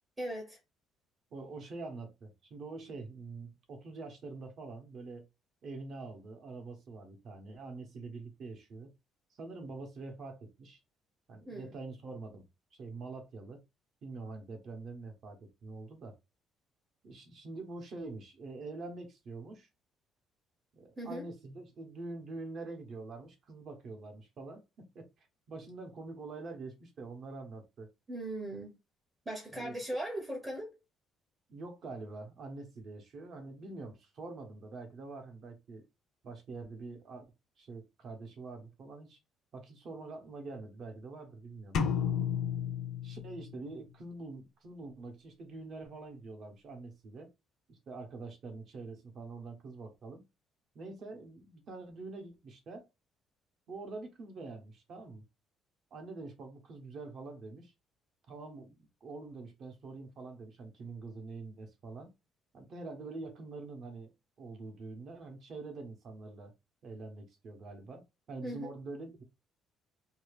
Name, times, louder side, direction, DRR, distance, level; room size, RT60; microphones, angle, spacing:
voice 1, 0.2-0.6 11.5-11.7 21.0-21.3 28.1-28.8 29.3-30.8 68.4-68.7, right 1 dB, 20° right, 0.8 m, -39 dB
voice 2, 1.3-5.2 5.6-8.9 9.4-10.8 11.3-12.4 12.8-13.6 14.0-16.2 17.0-19.7 20.7-25.1 25.5-27.9 29.5-29.7 31.5-35.8 36.2-37.2 37.6-39.2 39.5-41.8 43.0-47.3 47.7-50.2 50.7-52.9 53.7-55.2 55.9-57.7 58.3-62.1 62.5-64.1 64.4-66.5 66.8-69.2, right 3 dB, 50° right, 0.9 m, -45 dB
sound 1, 41.7-43.7, left 7 dB, 60° left, 0.5 m, -32 dB
2.7 x 2.4 x 3.2 m
cardioid pair, 140°, 0 cm